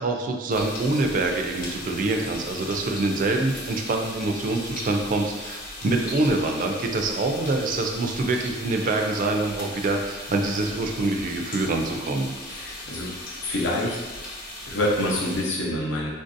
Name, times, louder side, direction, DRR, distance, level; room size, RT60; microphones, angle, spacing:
voice 1, 0.0-12.3, right 2 dB, 45° right, 3 dB, 0.4 m, -25 dB
sound 1, 0.5-15.4, left 1 dB, 50° left, 0.8 m, -38 dB
voice 2, 12.5-13.1 13.4-14.0 14.7-16.1, left 1 dB, 85° left, -3 dB, 0.7 m, -26 dB
3.7 x 2.6 x 2.5 m, 1.2 s
head